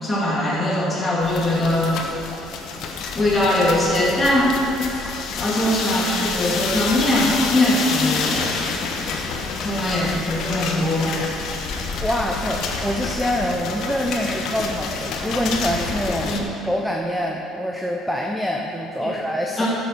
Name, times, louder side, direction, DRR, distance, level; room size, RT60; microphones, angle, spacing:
voice 1, 0.0-2.2 3.1-4.5 5.4-8.5 9.6-11.1 16.3-16.4 19.0-19.1 19.6-19.7, left 1 dB, 15° left, -6 dB, 2.9 m, -21 dB
sound 1, 1.2-16.4, left 4 dB, 65° left, 1.2 m, -28 dB
voice 2, 12.0-16.3 16.6-19.7, equal, ahead, 0 dB, 0.7 m, -25 dB
11.0 x 7.1 x 6.2 m, 2.8 s
cardioid pair, 135°, 0 cm